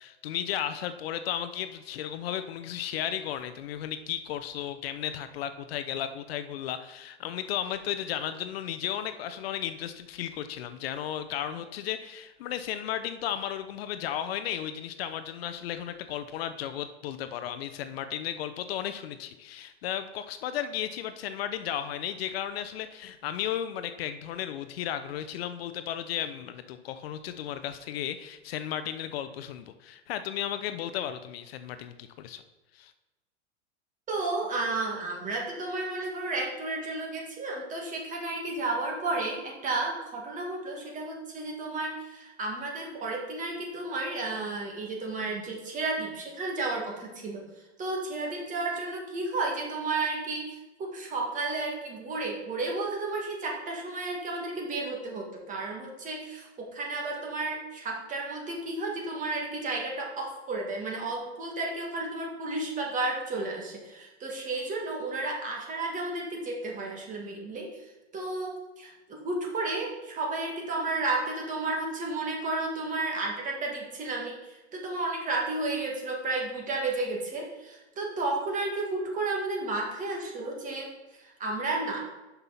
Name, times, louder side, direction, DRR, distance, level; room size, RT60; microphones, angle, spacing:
voice 1, 0.0-32.4 32.7-32.9, left 10 dB, 60° left, 10 dB, 0.6 m, -34 dB
voice 2, 34.1-47.4 47.8-67.8 68.1-82.0, right 2 dB, 20° right, 0 dB, 1.8 m, -32 dB
6.0 x 5.5 x 5.7 m, 1.1 s
hypercardioid pair, 135°, 35 cm